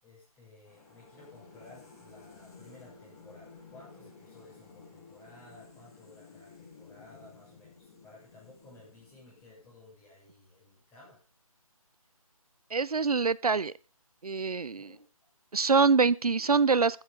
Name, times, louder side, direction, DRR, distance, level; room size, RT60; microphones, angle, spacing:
voice 1, 0.0-11.2 14.7-15.1, left 2 dB, 10° left, 7.0 m, -55 dB
sound 1, 0.6-10.0, left 4 dB, 25° left, 6.4 m, -54 dB
voice 2, 12.7-13.7 14.2-14.9 15.5-17.0, right 4 dB, 85° right, 0.6 m, -25 dB
14.5 x 9.4 x 5.2 m
figure-of-eight pair, 155°, 19 cm